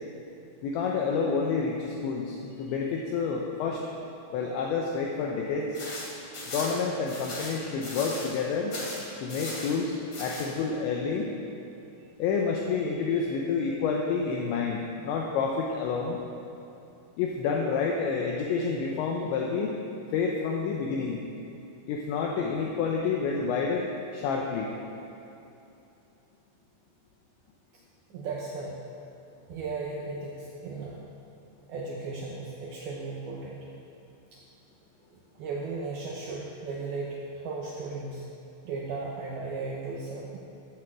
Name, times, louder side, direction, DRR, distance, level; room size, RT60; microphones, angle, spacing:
voice 1, 0.6-3.8 4.3-5.8 6.5-8.7 9.2-11.3 12.2-16.2 17.2-19.8 20.1-21.2 21.9-24.7, left 5 dB, 75° left, 0 dB, 2.9 m, -29 dB
sound 1, 5.7-8.4 8.7-9.7 10.1-10.5, left 2 dB, 40° left, 3.0 m, -38 dB
voice 2, 28.1-28.8 29.5-31.0 31.7-33.6 34.3-34.4 35.4-38.3 38.6-40.4, right 3 dB, 80° right, -3 dB, 2.2 m, -36 dB
13.0 x 8.1 x 7.4 m, 2.8 s
omnidirectional pair, 5.9 m